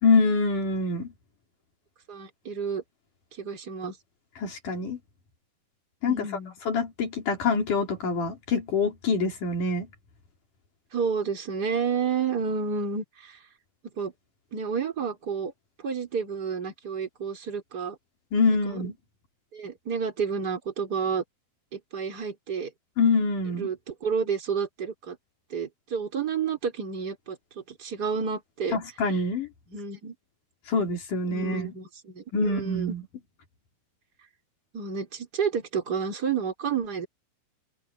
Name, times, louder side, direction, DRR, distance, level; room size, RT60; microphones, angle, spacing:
voice 1, 0.0-1.1 4.4-5.0 6.0-6.2 6.7-9.9 18.3-18.9 23.0-23.7 28.7-29.5 30.7-31.7 32.3-33.0, left 4 dB, 45° left, 4.8 m, -25 dB
voice 2, 2.1-2.8 3.3-4.0 6.1-6.5 10.9-13.4 13.8-14.1 14.5-15.5 15.8-18.0 18.5-18.8 19.5-21.2 21.7-22.7 23.5-25.2 25.5-28.8 29.7-30.1 31.3-32.9 34.7-37.1, right 6 dB, 20° right, 4.0 m, -30 dB
open air
omnidirectional pair, 5.7 m